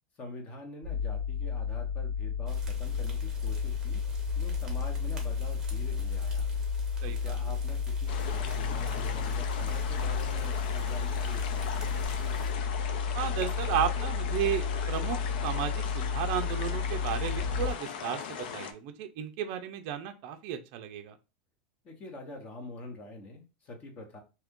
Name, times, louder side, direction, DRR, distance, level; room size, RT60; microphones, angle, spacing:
voice 1, 0.2-4.0 4.3-6.5 7.0-12.1 21.8-24.2, left 2 dB, 25° left, 3 dB, 0.9 m, -45 dB
sound 1, 0.8-17.7, left 6 dB, 5° left, 1.2 m, -32 dB
sound 2, 2.5-12.5, equal, 15° right, 0.8 m, -45 dB
voice 2, 7.0-7.3 13.1-21.2, right 9 dB, 50° right, 6 dB, 0.4 m, -34 dB
sound 3, 8.1-18.7, left 7 dB, 75° left, 0.5 m, -39 dB
2.8 x 2.4 x 3.5 m, 0.29 s
supercardioid pair, 155°, 5 cm